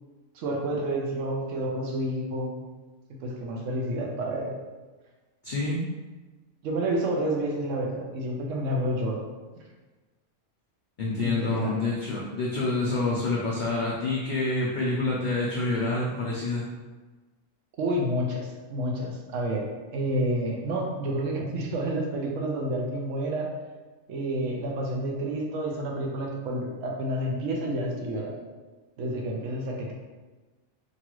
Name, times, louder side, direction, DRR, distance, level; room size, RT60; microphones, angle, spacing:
voice 1, 0.4-2.5 3.2-4.5 6.6-9.2 11.2-11.7 17.8-19.7 19.9-23.5 24.1-28.4 29.0-29.9, right 1 dB, 75° right, -1 dB, 1.0 m, -29 dB
voice 2, 5.4-5.8 11.0-16.7, left 2 dB, 80° left, -4 dB, 0.4 m, -27 dB
3.0 x 2.4 x 2.9 m, 1.3 s
omnidirectional pair, 1.4 m